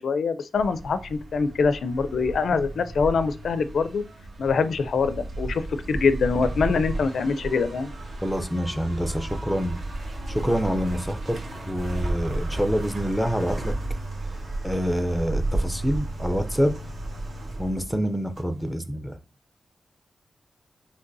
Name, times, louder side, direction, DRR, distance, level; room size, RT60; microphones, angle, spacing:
voice 1, 0.0-4.0 4.4-7.9, left 5 dB, 75° left, 0.4 m, -24 dB
sound 1, 0.5-18.7, right 2 dB, 70° right, 1.2 m, -33 dB
voice 2, 8.2-9.8 10.3-11.4 11.7-13.7 14.6-16.8 17.6-19.2, equal, ahead, 0.5 m, -26 dB
5.3 x 3.3 x 2.6 m
wide cardioid pair, 150°, 0 cm